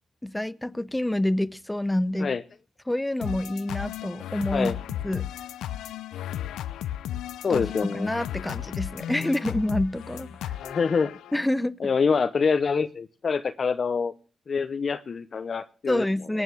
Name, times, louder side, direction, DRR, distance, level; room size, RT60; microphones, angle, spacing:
voice 1, 0.2-2.3 2.9-4.8 5.0-5.3 7.5-10.6 11.3-11.8 15.9-16.4, left 1 dB, 10° left, 0.7 m, -27 dB
sound 1, 3.2-11.4, left 11 dB, 90° left, 0.6 m, -35 dB
voice 2, 7.4-8.1 10.6-11.1 11.8-14.1 14.5-16.0, left 5 dB, 55° left, 0.8 m, -25 dB
18.0 x 9.0 x 6.2 m
supercardioid pair, 55°, 0 cm